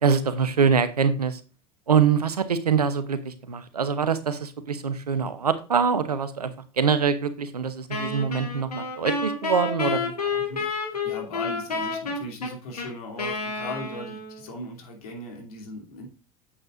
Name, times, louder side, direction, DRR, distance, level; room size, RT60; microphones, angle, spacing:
voice 1, 0.0-1.4 1.9-10.4, right 6 dB, 90° right, 12 dB, 0.8 m, -24 dB
Wind instrument woodwind instrument, 7.9-14.5, left 4 dB, 90° left, 1.7 m, -30 dB
voice 2, 10.4-16.1, left 1 dB, 75° left, 1 dB, 2.8 m, -38 dB
8.6 x 8.0 x 2.5 m, 0.33 s
hypercardioid pair, 80°, 19 cm